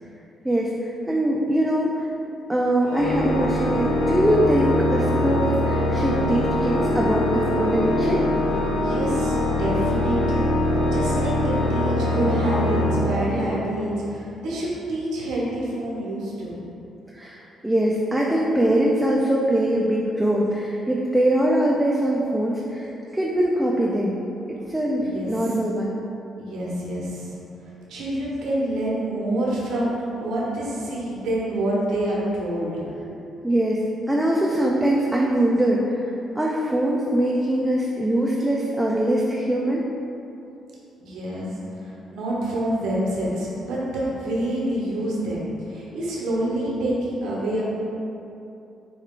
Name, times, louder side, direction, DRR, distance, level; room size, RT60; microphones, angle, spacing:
voice 1, 0.4-2.1 2.5-8.2 17.1-24.2 24.5-26.0 33.4-36.0 36.3-39.8, right 1 dB, 5° right, -3 dB, 0.4 m, -22 dB
Organ, 2.8-13.8, left 1 dB, 75° left, 0.9 m, -23 dB
voice 2, 8.8-10.5 10.9-16.6 24.9-25.4 26.4-33.1 41.0-41.5 41.8-47.6, right 1 dB, 85° right, -6 dB, 0.9 m, -27 dB
4.5 x 2.3 x 3.6 m, 2.8 s
cardioid pair, 90°, 0 cm